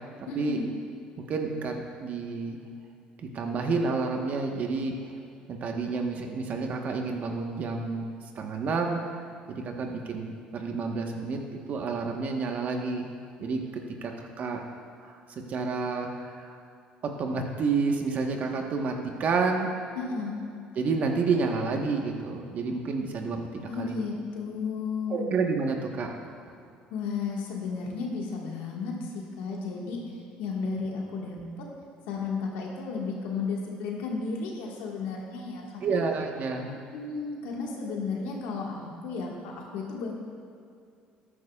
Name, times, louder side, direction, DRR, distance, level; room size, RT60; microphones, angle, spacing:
voice 1, 0.3-0.7 20.0-20.4 23.7-25.3 26.9-31.7 32.1-36.0 36.9-40.1, left 4 dB, 80° left, -1 dB, 1.8 m, -33 dB
voice 2, 1.3-2.6 3.2-4.9 5.5-8.1 8.3-9.2 9.5-13.1 13.4-13.6 14.0-14.6 15.0-15.2 15.5-16.6 17.0-19.7 20.8-23.4 23.8-23.9 25.1-26.1 35.8-36.7, right 4 dB, 50° right, 2 dB, 1.3 m, -29 dB
13.5 x 9.9 x 2.4 m, 2.4 s
supercardioid pair, 90°, 3 cm